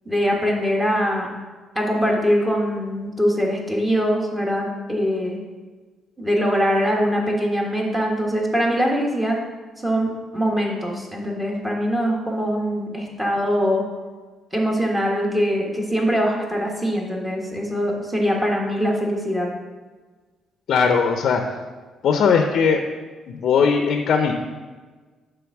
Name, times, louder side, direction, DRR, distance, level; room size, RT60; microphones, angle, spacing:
voice 1, 0.0-1.3 1.7-5.4 6.2-9.4 9.8-13.8 14.5-19.5, equal, 15° right, -1 dB, 1.4 m, -22 dB
voice 2, 20.7-21.4 22.0-22.8 23.3-24.3, left 6 dB, 70° left, 5 dB, 0.6 m, -19 dB
7.0 x 3.4 x 5.9 m, 1.3 s
cardioid pair, 90°, 0 cm